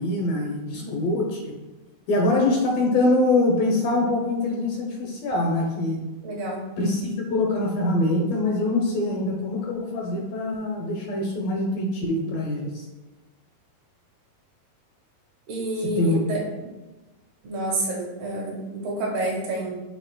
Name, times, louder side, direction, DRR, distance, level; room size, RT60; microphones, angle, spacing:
voice 1, 0.0-1.5 2.1-6.0 6.8-12.7 15.8-16.2, left 2 dB, 75° left, 0 dB, 2.3 m, -24 dB
voice 2, 6.2-6.6 9.1-9.2 15.5-16.4 17.4-19.7, right 2 dB, 75° right, -3 dB, 3.5 m, -29 dB
11.0 x 4.2 x 2.2 m, 1.1 s
omnidirectional pair, 4.6 m